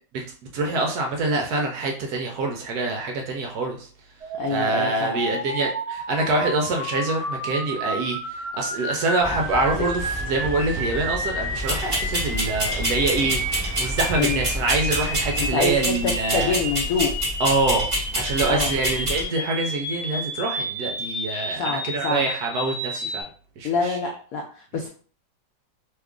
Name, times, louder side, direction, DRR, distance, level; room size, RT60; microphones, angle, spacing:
voice 1, 0.5-3.9 4.5-16.5 17.4-23.3 23.6-24.0, right 3 dB, 70° right, 2 dB, 1.0 m, -25 dB
sound 1, 4.2-23.2, equal, 5° left, 1.0 m, -31 dB
voice 2, 4.4-5.2 14.2-14.4 15.5-17.1 18.4-18.7 21.6-22.2 23.6-24.9, left 4 dB, 75° left, 1 dB, 0.8 m, -26 dB
sound 2, 9.2-15.6, equal, 30° left, 0.4 m, -34 dB
sound 3, 11.6-19.2, equal, 20° right, 1.0 m, -27 dB
3.0 x 2.4 x 3.5 m, 0.43 s
omnidirectional pair, 2.0 m